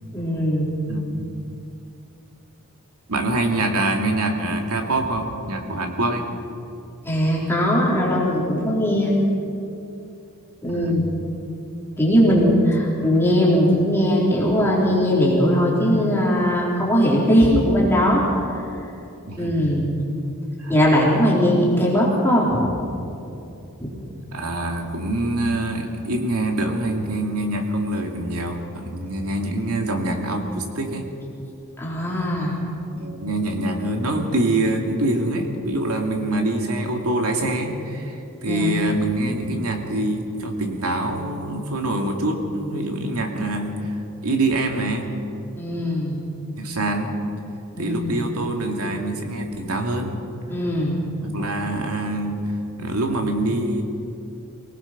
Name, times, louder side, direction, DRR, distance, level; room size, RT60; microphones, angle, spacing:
voice 1, 0.1-0.8 7.0-9.1 10.6-11.1 12.0-18.3 19.4-19.9 20.7-22.7 23.8-23.9 31.8-32.6 38.4-38.8 45.6-46.2 47.7-48.3 50.5-51.0, equal, 10° left, -5 dB, 3.9 m, -19 dB
voice 2, 0.9-1.3 3.1-6.3 10.7-11.0 19.3-19.6 20.6-20.7 24.3-31.0 33.0-43.7 44.2-45.1 46.6-47.1 47.8-50.1 51.2-52.4 52.8-53.8, right 2 dB, 90° right, 2 dB, 2.5 m, -25 dB
25.0 x 18.5 x 6.0 m, 2.7 s
head